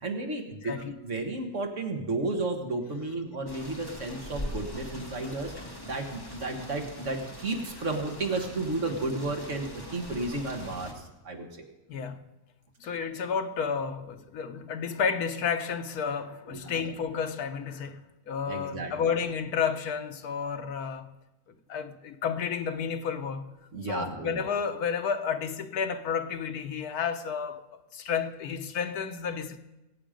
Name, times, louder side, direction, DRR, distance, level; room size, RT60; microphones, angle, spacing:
voice 1, 0.0-5.5 5.8-11.5 16.5-16.7 18.5-18.9 23.7-24.5, right 2 dB, 55° right, 1.9 m, -33 dB
sound 1, 3.5-10.9, left 1 dB, 15° left, 1.6 m, -42 dB
voice 2, 11.9-12.2 12.8-21.1 21.7-23.5 23.9-27.6 27.9-29.6, left 6 dB, 80° left, 1.4 m, -31 dB
22.0 x 8.2 x 5.1 m
omnidirectional pair, 1.6 m